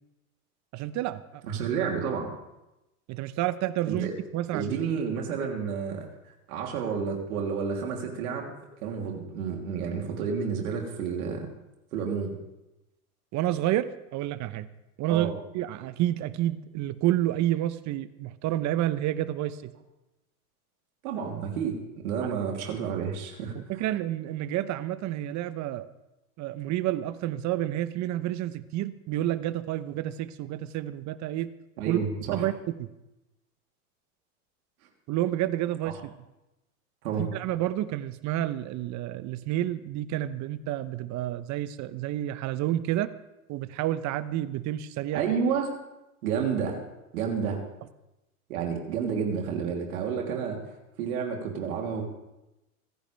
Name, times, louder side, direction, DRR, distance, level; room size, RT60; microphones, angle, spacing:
voice 1, 0.7-1.4 3.1-4.8 13.3-14.7 15.0-19.7 23.5-25.9 26.4-31.5 31.9-32.0 32.3-32.9 35.1-36.1 37.2-43.1 43.5-45.2, right 13 dB, 40° right, 15 dB, 0.9 m, -29 dB
voice 2, 1.4-2.3 3.9-4.1 4.5-8.5 8.8-11.5 11.9-12.3 15.1-15.3 21.0-23.8 31.8-32.5 37.0-37.3 45.1-45.7 46.2-46.8 47.1-47.6 48.5-52.0, right 6 dB, 75° right, 1 dB, 3.3 m, -30 dB
27.0 x 10.0 x 3.4 m, 0.95 s
hypercardioid pair, 105°, 44 cm